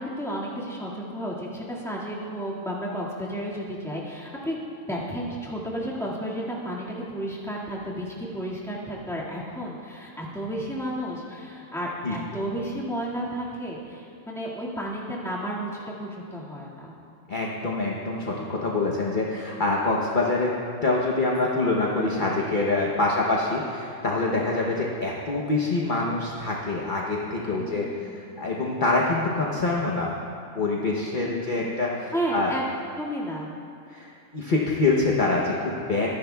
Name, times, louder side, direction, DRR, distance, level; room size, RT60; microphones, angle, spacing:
voice 1, 0.0-4.6 4.9-16.9 23.2-23.4 27.6-28.2 31.3-31.7 32.1-32.7 33.0-33.5, equal, ahead, -6 dB, 1.8 m, -32 dB
voice 2, 17.3-20.5 20.8-30.1 30.5-32.5 33.9-36.1, left 3 dB, 40° left, -2 dB, 1.0 m, -25 dB
23.5 x 10.5 x 2.3 m, 2.6 s
omnidirectional pair, 1.4 m